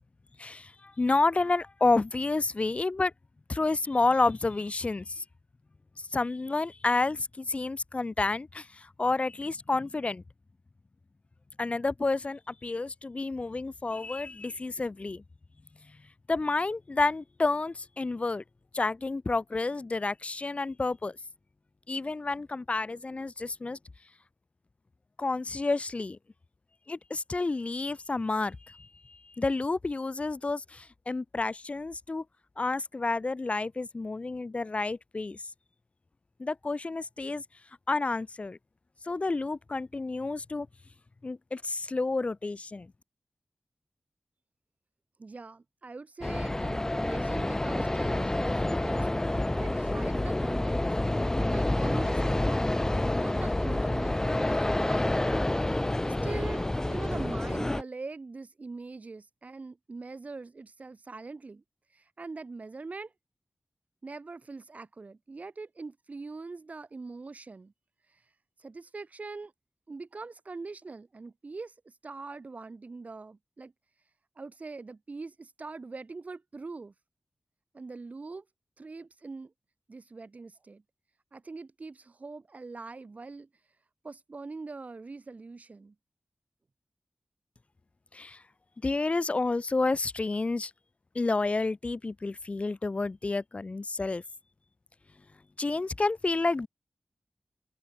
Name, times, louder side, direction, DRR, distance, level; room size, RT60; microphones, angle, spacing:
voice 1, 0.4-3.1 3.5-5.2 6.1-10.2 11.6-15.2 16.3-18.4 18.7-21.1 21.9-23.8 25.2-26.2 26.9-32.2 32.6-35.4 36.4-37.4 37.9-38.6 39.1-40.7 41.2-42.9 88.1-88.4 88.8-90.7 91.2-94.2 95.6-96.7, left 3 dB, 40° left, 2.1 m, -30 dB
voice 2, 45.2-50.8 51.4-55.2 55.6-61.6 61.9-63.1 64.0-67.7 68.6-69.5 69.9-73.7 74.4-76.9 77.7-78.4 78.8-79.5 79.9-80.8 81.3-83.5 84.0-85.9, right 3 dB, 45° right, 5.0 m, -42 dB
sound 1, 46.2-57.8, left 1 dB, 15° left, 0.6 m, -28 dB
wide cardioid pair, 110°, 3 cm